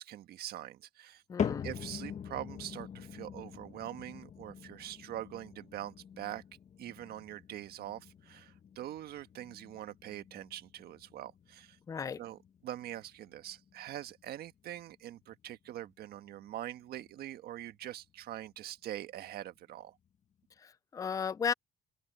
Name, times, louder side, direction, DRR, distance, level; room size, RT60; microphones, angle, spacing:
voice 1, 0.0-1.2 1.6-6.4 6.8-11.8 12.2-20.0, right 12 dB, 70° right, 1.5 m, -44 dB
voice 2, 1.3-1.7 11.9-12.2 20.6-21.5, left 6 dB, 20° left, 0.4 m, -35 dB
sound 1, 1.4-17.7 18.0-18.5 19.1-19.2 20.1-20.2, left 8 dB, 45° left, 1.6 m, -44 dB
open air
cardioid pair, 110°, 17 cm